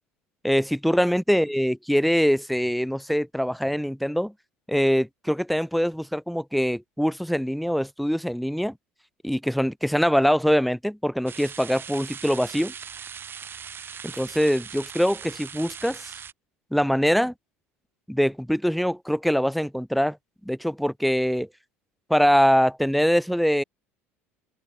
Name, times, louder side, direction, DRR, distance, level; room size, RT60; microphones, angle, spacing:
voice 1, 0.4-4.3 4.7-8.7 9.2-12.7 14.0-16.1 16.7-17.3 18.1-20.2 20.5-21.5 22.1-23.6, equal, ahead, 0.6 m, -23 dB
sound 1, 11.3-16.3, right 7 dB, 30° right, 1.2 m, -40 dB
hypercardioid pair, 70°, 7 cm